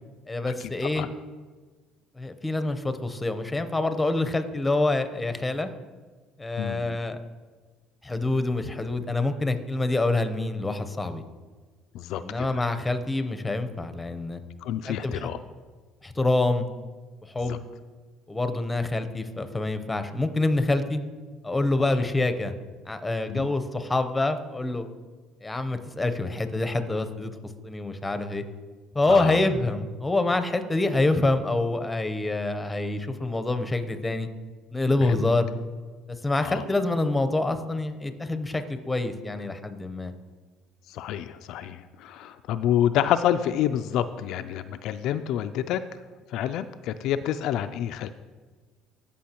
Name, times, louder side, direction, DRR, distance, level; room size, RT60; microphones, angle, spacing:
voice 1, 0.3-1.1 2.2-5.7 6.4-7.2 8.0-11.2 12.2-14.4 14.9-15.3 16.0-16.6 17.3-17.6 18.3-21.0 21.4-22.5 22.9-24.8 25.4-27.3 27.6-28.4 28.9-34.3 34.7-35.5 36.1-40.1, left 2 dB, 15° left, 9 dB, 0.8 m, -26 dB
voice 2, 6.6-7.0 11.9-12.5 14.6-15.4 17.5-17.6 23.3-23.5 29.1-29.4 35.0-35.2 36.4-36.6 40.9-45.8 46.3-48.1, left 11 dB, 70° left, 10 dB, 0.3 m, -28 dB
14.5 x 5.5 x 2.9 m, 1.4 s
supercardioid pair, 90°, 0 cm